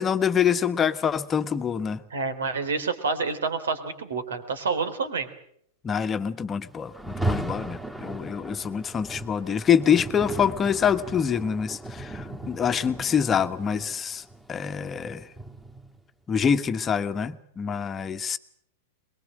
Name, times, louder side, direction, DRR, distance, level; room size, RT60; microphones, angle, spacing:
voice 1, 0.0-2.0 5.8-14.2 14.5-15.2 16.3-18.4, left 7 dB, 20° left, 9 dB, 1.4 m, -25 dB
voice 2, 2.1-5.3, right 4 dB, 70° right, 11 dB, 3.4 m, -28 dB
Rain, 6.9-16.0, right 2 dB, 10° right, 3.0 m, -36 dB
23.5 x 22.0 x 7.7 m, 0.68 s
figure-of-eight pair, 100°, 0 cm